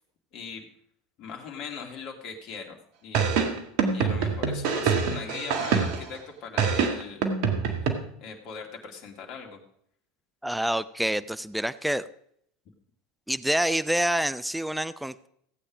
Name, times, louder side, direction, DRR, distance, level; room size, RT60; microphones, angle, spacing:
voice 1, 0.3-0.7 1.2-3.4 3.9-7.3 8.2-9.6, left 5 dB, 50° left, 1 dB, 2.6 m, -40 dB
sound 1, 3.1-6.2 6.6-7.9, right 6 dB, 60° right, 1.8 m, -25 dB
voice 2, 10.4-12.1 13.3-15.3, right 1 dB, 5° right, 15 dB, 0.5 m, -27 dB
16.0 x 8.6 x 5.1 m, 0.70 s
hypercardioid pair, 75°, 0 cm